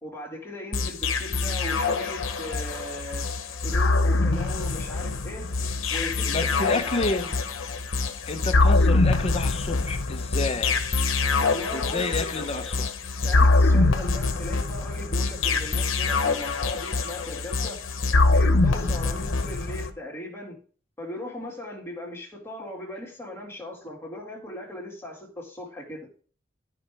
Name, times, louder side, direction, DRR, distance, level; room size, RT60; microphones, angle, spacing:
voice 1, 0.0-3.3 3.6-5.5 5.9-7.3 11.4-12.8 13.1-17.8 18.3-20.6 21.0-26.1, left 1 dB, 15° left, 2.1 m, -38 dB
sound 1, 0.7-19.9, left 3 dB, 85° left, 0.9 m, -24 dB
voice 2, 6.3-7.3 8.3-10.8 11.7-12.9, left 3 dB, 30° left, 0.7 m, -29 dB
12.5 x 4.9 x 3.4 m
head